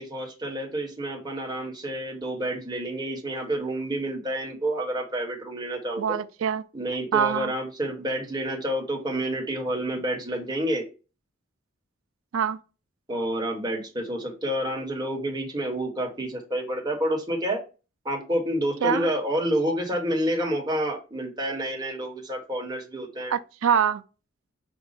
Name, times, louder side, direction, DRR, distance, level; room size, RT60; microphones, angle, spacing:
voice 1, 0.0-6.2 6.7-10.8 13.1-17.6 18.0-23.3, right 1 dB, 20° right, 1.2 m, -29 dB
voice 2, 6.0-6.6 7.1-7.5 12.3-12.6 18.8-19.1 23.3-24.0, right 8 dB, 80° right, 0.4 m, -24 dB
5.2 x 2.3 x 4.0 m
head